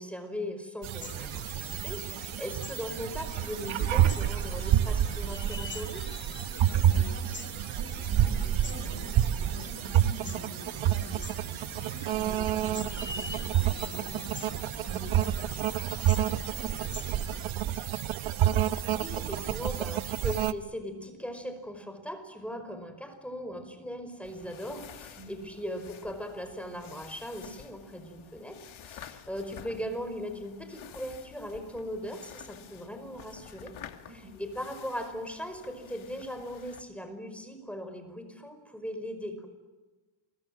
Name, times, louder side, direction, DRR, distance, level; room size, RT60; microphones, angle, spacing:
voice 1, 0.0-6.1 18.7-33.7 34.1-39.5, equal, 5° left, 7 dB, 5.1 m, -39 dB
sound 1, 0.8-20.5, right 11 dB, 75° right, 1.1 m, -29 dB
sound 2, 1.0-17.5, left 4 dB, 25° left, 1.2 m, -45 dB
voice 2, 6.6-7.3 7.7-11.2 11.8-14.4 14.9-17.8 25.2-25.5 34.1-34.4, equal, 30° right, 7 dB, 7.4 m, -47 dB
sound 3, 24.2-36.8, left 9 dB, 75° left, 2.4 m, -50 dB
29.5 x 24.0 x 7.7 m, 1.2 s
cardioid pair, 110°, 48 cm